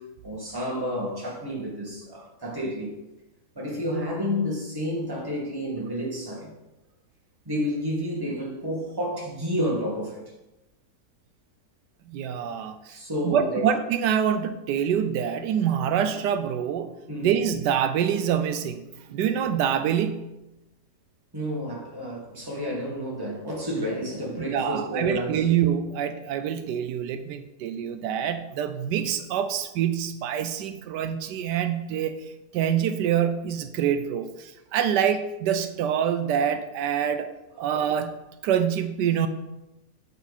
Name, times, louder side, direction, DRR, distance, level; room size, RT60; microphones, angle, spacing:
voice 1, 0.2-3.0 3.6-6.5 7.5-10.2 12.9-13.6 17.1-17.3 21.3-25.4, equal, 15° right, -4 dB, 2.1 m, -30 dB
voice 2, 12.1-13.0 13.2-17.0 17.2-18.8 19.1-20.3 24.4-32.1 32.5-37.3 37.6-39.3, right 9 dB, 85° right, 9 dB, 1.2 m, -26 dB
8.0 x 6.9 x 4.2 m, 0.97 s
omnidirectional pair, 1.8 m